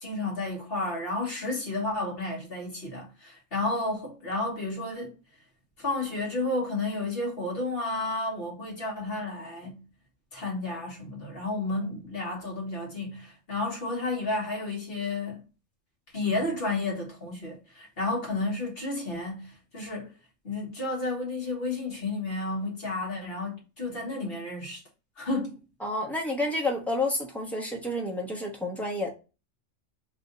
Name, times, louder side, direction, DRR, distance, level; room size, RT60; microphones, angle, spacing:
voice 1, 0.0-5.1 5.8-9.8 10.3-15.4 16.1-20.1 20.4-24.8 25.2-25.6, left 2 dB, 50° left, 1.8 m, -32 dB
voice 2, 25.8-29.1, left 1 dB, ahead, 0.9 m, -30 dB
3.5 x 2.6 x 3.9 m
omnidirectional pair, 1.3 m